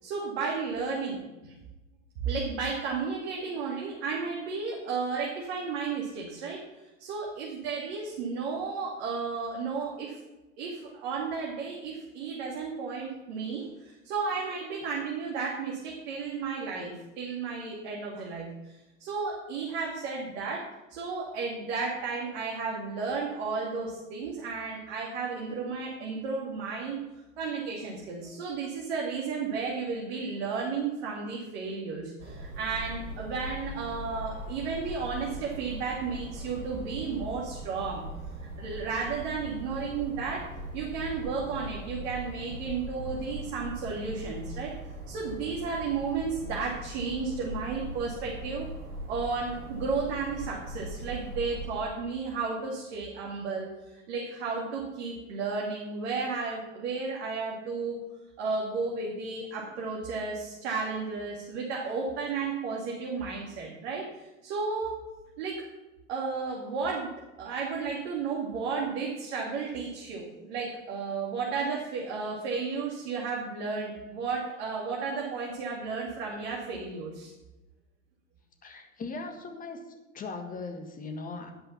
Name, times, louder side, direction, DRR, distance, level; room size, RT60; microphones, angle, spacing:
voice 1, 0.0-1.5 2.2-10.2 10.6-27.0 27.4-38.0 38.6-40.5 40.7-44.7 45.1-48.7 49.1-58.0 58.4-65.0 65.4-65.6 66.1-67.1 67.4-77.3, right 4 dB, 50° right, -3 dB, 2.5 m, -33 dB
sound 1, 32.2-51.7, right 1 dB, 85° right, 2.8 m, -40 dB
voice 2, 78.6-79.8 80.1-81.5, left 3 dB, 20° left, 6 dB, 1.7 m, -39 dB
16.5 x 5.6 x 5.9 m, 1.1 s
figure-of-eight pair, 90°, 40 cm